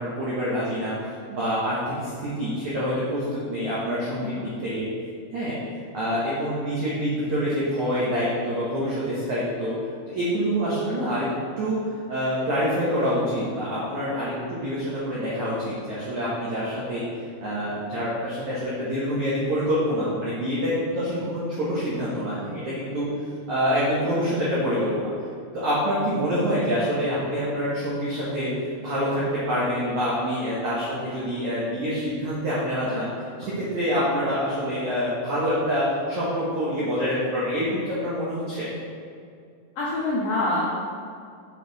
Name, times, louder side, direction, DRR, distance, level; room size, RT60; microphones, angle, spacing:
voice 1, 0.0-4.9 5.3-5.6 5.9-9.7 10.1-11.8 12.1-17.0 17.4-23.1 23.5-25.1 25.5-28.5 28.8-33.1 33.4-38.7, equal, 80° right, -8 dB, 1.6 m, -26 dB
voice 2, 4.2-4.8 39.8-40.7, left 2 dB, 85° left, -7 dB, 2.0 m, -27 dB
6.8 x 6.7 x 4.1 m, 2.2 s
omnidirectional pair, 5.6 m